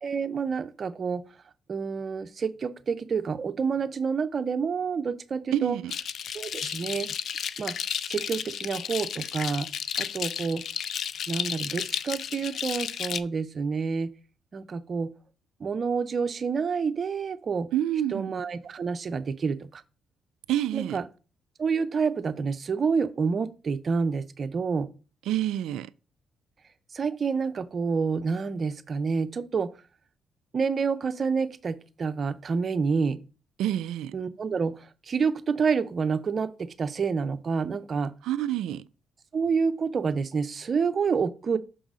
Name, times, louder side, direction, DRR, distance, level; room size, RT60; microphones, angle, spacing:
voice 1, 0.0-1.2 1.7-5.8 6.3-7.1 7.6-7.7 8.1-9.7 10.0-10.6 11.3-14.1 14.5-15.1 15.6-17.7 18.1-19.8 20.7-21.0 21.6-24.9 26.9-29.7 30.5-33.2 34.1-38.1 39.3-41.6, right 5 dB, 45° right, 0.6 m, -28 dB
voice 2, 5.5-5.9 17.7-18.3 20.5-21.0 25.3-25.9 33.6-34.1 38.2-38.8, right 12 dB, 90° right, 0.4 m, -28 dB
sound 1, 5.9-13.2, left 8 dB, 65° left, 0.4 m, -33 dB
6.2 x 3.9 x 6.2 m
cardioid pair, 90°, 0 cm